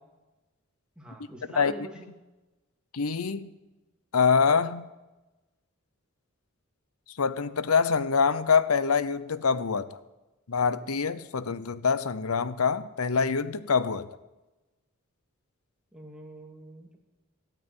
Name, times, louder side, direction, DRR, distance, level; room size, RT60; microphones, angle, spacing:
voice 1, 1.0-2.1 15.9-17.0, right 1 dB, 5° right, 0 dB, 2.5 m, -45 dB
voice 2, 2.9-3.5 4.1-4.9 7.2-10.0 10.5-14.1, left 5 dB, 85° left, 15 dB, 0.8 m, -25 dB
14.0 x 9.1 x 9.8 m, 1.1 s
head